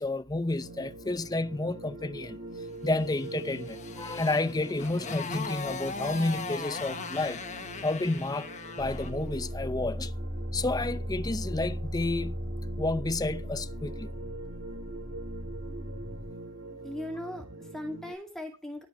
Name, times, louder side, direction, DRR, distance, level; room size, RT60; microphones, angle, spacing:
voice 1, 0.0-2.4 2.8-7.4 7.8-8.5 8.8-10.1 10.5-12.4 12.8-14.1, left 2 dB, 15° left, 0.6 m, -30 dB
sound 1, 0.6-18.1, right 1 dB, 70° right, 6.9 m, -44 dB
Motorcycle, 3.2-9.2, left 4 dB, 35° left, 1.2 m, -39 dB
sound 2, 8.8-16.3, equal, 15° right, 3.2 m, -37 dB
voice 2, 16.8-18.8, left 1 dB, ahead, 2.3 m, -38 dB
13.0 x 5.6 x 7.2 m
head